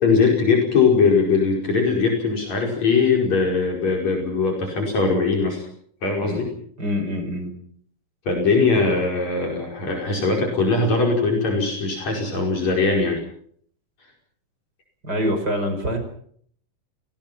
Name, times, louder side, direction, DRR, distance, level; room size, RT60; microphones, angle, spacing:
voice 1, 0.0-5.6 6.0-6.5 8.3-13.2, left 4 dB, 60° left, 0 dB, 6.5 m, -20 dB
voice 2, 6.8-7.5 15.0-16.0, equal, 30° right, 6 dB, 5.8 m, -25 dB
29.5 x 19.0 x 6.0 m, 0.63 s
omnidirectional pair, 3.6 m